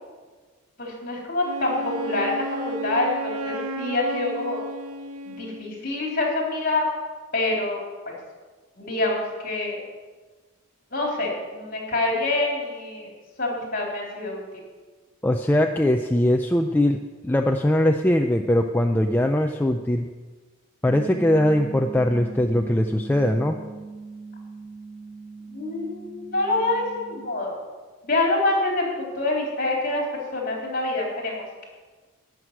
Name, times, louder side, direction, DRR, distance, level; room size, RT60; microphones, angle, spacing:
voice 1, 0.8-4.6 5.3-6.9 7.3-8.2 8.8-9.8 10.9-13.1 13.4-14.4 25.5-27.6 28.0-30.0 30.3-31.7, left 2 dB, 40° left, -2 dB, 3.7 m, -26 dB
Wind instrument woodwind instrument, 1.4-5.8, right 1 dB, 90° right, 1.0 m, -33 dB
voice 2, 15.2-17.0 17.2-20.1 20.8-23.6, left 1 dB, 10° left, 4 dB, 0.4 m, -21 dB
sound 1, 20.9-27.3, right 4 dB, 35° right, 2.0 m, -40 dB
12.0 x 6.4 x 9.3 m, 1.4 s
head